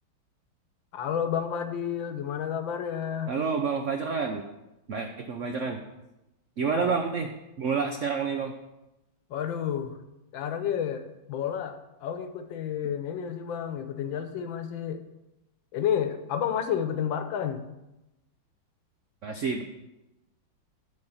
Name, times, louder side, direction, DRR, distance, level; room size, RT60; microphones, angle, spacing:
voice 1, 0.9-3.3 6.7-7.0 9.3-9.9 10.3-15.0 15.7-17.6, left 8 dB, 75° left, 9 dB, 1.5 m, -30 dB
voice 2, 3.3-4.5 4.9-5.8 6.6-7.3 7.6-8.5 19.2-19.6, right 5 dB, 75° right, 5 dB, 0.7 m, -28 dB
11.0 x 4.2 x 7.1 m, 0.96 s
omnidirectional pair, 2.2 m